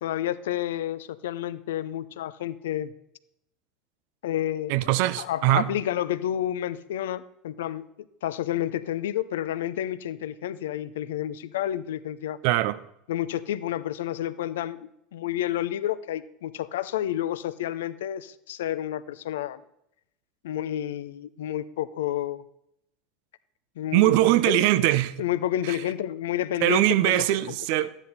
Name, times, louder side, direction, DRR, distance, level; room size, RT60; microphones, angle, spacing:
voice 1, 0.0-2.9 4.2-4.7 5.2-7.9 8.2-12.4 13.1-14.8 15.1-19.6 20.4-22.4 23.8-24.9 25.2-27.3, left 12 dB, 75° left, 0.5 m, -30 dB
voice 2, 4.7-5.7 12.4-12.8 23.9-25.1 25.6-25.8 26.6-27.9, right 16 dB, 65° right, 0.5 m, -22 dB
12.5 x 9.8 x 4.2 m
hypercardioid pair, 80°, 0 cm